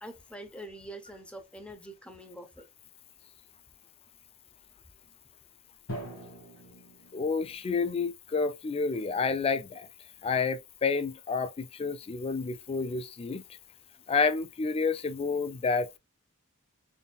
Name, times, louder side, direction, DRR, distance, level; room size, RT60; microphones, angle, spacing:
voice 1, 0.0-2.7, right 1 dB, 5° left, 0.7 m, -45 dB
Drum, 5.9-7.8, right 1 dB, 65° left, 1.7 m, -43 dB
voice 2, 7.1-9.8 10.2-13.4 14.1-16.0, left 4 dB, 25° left, 0.3 m, -29 dB
4.2 x 3.5 x 2.3 m
head